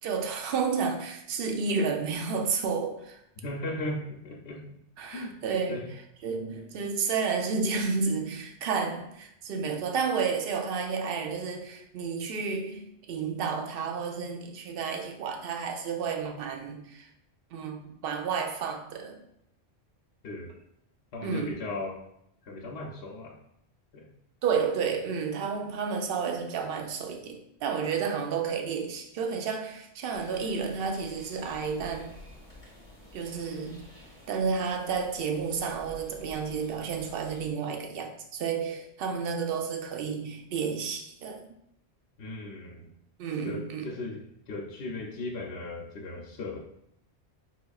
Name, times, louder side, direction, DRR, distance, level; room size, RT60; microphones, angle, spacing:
voice 1, 0.0-3.2 5.0-5.8 6.2-17.1 17.5-19.2 21.2-21.5 24.4-32.2 33.1-33.9 34.3-41.5 43.2-43.9, right 5 dB, 65° right, 0.7 m, -31 dB
voice 2, 3.4-4.6 5.1-5.4 5.7-5.8 20.2-20.5 21.1-22.0 22.4-23.4 23.9-24.1 42.2-42.9 43.4-46.6, left 2 dB, 70° left, 0.8 m, -37 dB
sound 1, 30.1-37.5, left 1 dB, 5° left, 1.0 m, -51 dB
5.7 x 2.5 x 2.3 m
omnidirectional pair, 1.1 m